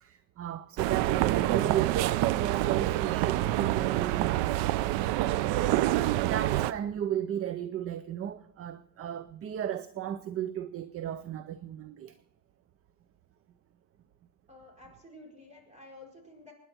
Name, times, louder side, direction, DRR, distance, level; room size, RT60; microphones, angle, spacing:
voice 1, 0.0-4.7 5.7-5.9 6.2-12.2, right 10 dB, 35° right, 0.5 m, -35 dB
sound 1, 0.8-6.7, right 15 dB, 85° right, 0.7 m, -27 dB
voice 2, 14.5-16.5, left 2 dB, 15° right, 4.7 m, -51 dB
25.0 x 10.0 x 4.4 m
cardioid pair, 145°, 41 cm